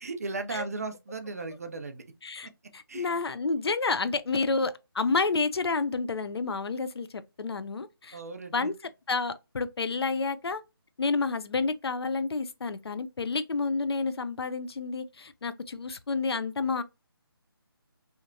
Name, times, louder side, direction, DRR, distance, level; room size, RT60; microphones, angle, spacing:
voice 1, 0.0-2.0 2.9-3.1 8.1-8.7, right 3 dB, 40° right, 0.4 m, -36 dB
voice 2, 2.2-8.2 8.5-8.7 9.1-10.6 11.0-16.8, left 4 dB, 90° left, 0.4 m, -30 dB
2.9 x 2.1 x 2.4 m
figure-of-eight pair, 170°, 13 cm